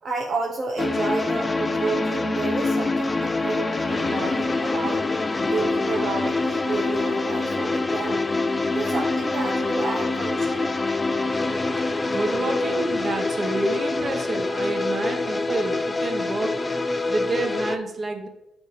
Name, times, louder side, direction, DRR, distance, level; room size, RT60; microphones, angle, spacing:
voice 1, 0.0-5.0 5.5-8.2 8.6-10.7, right 3 dB, 55° right, 0 dB, 0.9 m, -30 dB
sound 1, 0.8-17.8, left 3 dB, 25° left, 0.5 m, -25 dB
voice 2, 12.1-18.3, right 2 dB, 35° right, 4 dB, 1.3 m, -28 dB
7.1 x 5.0 x 4.1 m, 0.90 s
cardioid pair, 90°, 0 cm